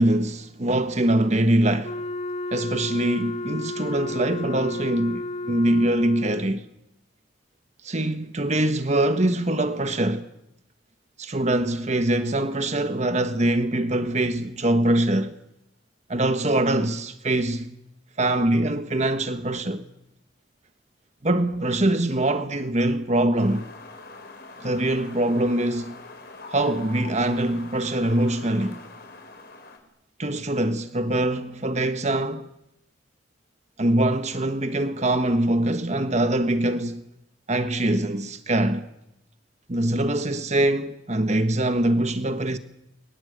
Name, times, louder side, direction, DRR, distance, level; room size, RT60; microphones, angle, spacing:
voice 1, 0.0-2.0 2.5-6.6 7.8-10.3 11.2-15.4 16.1-17.7 18.2-19.8 21.2-23.7 24.6-25.9 26.5-28.8 30.2-32.5 33.8-37.0 37.5-38.9 39.7-42.6, right 1 dB, 40° right, 1.4 m, -23 dB
Wind instrument woodwind instrument, 1.8-6.5, left 2 dB, 35° left, 1.5 m, -32 dB
sound 1, 23.4-29.8, left 3 dB, 55° left, 5.3 m, -43 dB
30.0 x 24.0 x 8.2 m
head